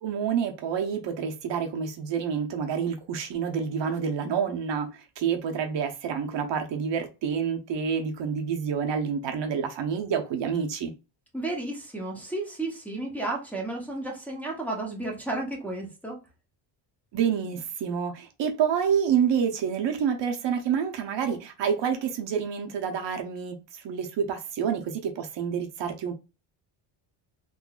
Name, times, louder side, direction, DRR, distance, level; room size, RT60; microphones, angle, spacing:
voice 1, 0.0-10.9 17.1-26.1, right 7 dB, 60° right, 0.8 m, -28 dB
voice 2, 11.3-16.2, right 2 dB, 5° left, 0.8 m, -32 dB
3.8 x 2.6 x 2.4 m
cardioid pair, 115°, 50 cm